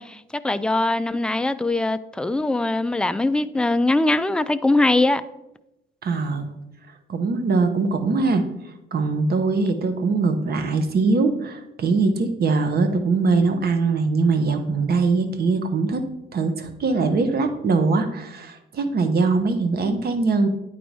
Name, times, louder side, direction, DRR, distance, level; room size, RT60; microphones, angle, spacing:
voice 1, 0.0-5.2, left 2 dB, 5° left, 0.3 m, -22 dB
voice 2, 6.0-6.5 7.1-8.4 8.9-16.0 16.3-20.5, right 4 dB, 50° right, 1.0 m, -22 dB
9.2 x 4.2 x 4.6 m
cardioid pair, 90°, 20 cm